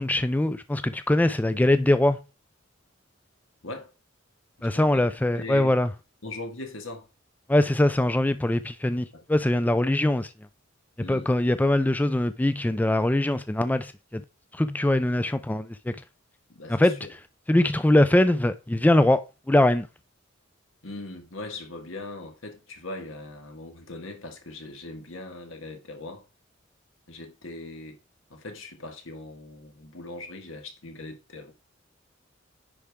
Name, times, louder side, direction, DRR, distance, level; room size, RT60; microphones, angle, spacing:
voice 1, 0.0-2.2 4.6-5.9 7.5-10.3 11.1-14.2 14.5-15.9 16.7-17.0 17.5-19.2 19.5-19.9, left 1 dB, 10° left, 0.3 m, -22 dB
voice 2, 4.6-5.1 5.3-5.8 6.2-7.1 9.1-9.2 11.0-11.3 16.5-17.1 20.8-26.2 27.1-28.0 28.3-31.5, left 2 dB, 85° left, 1.6 m, -40 dB
9.9 x 4.9 x 3.6 m
head